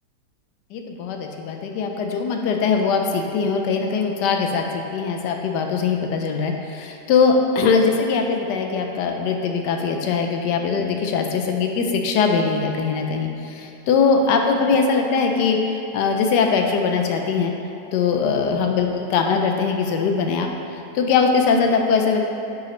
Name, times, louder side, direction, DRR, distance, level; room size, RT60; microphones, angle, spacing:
voice 1, 0.7-15.6 15.9-17.5 17.9-22.3, left 5 dB, 85° left, 3 dB, 1.3 m, -21 dB
9.1 x 4.8 x 3.1 m, 3.0 s
omnidirectional pair, 1.8 m